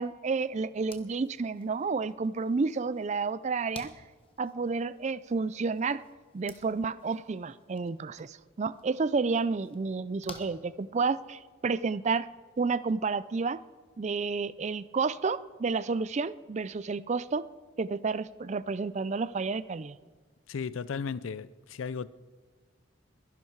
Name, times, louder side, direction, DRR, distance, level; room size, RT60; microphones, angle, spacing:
voice 1, 0.0-3.9 4.4-6.0 6.3-12.3 12.6-13.6 14.0-17.5 17.8-20.0, right 4 dB, 35° right, 0.4 m, -30 dB
sound 1, 0.7-11.4, left 4 dB, 25° left, 1.2 m, -54 dB
voice 2, 20.5-22.1, left 5 dB, 85° left, 0.5 m, -35 dB
22.0 x 11.0 x 4.6 m
head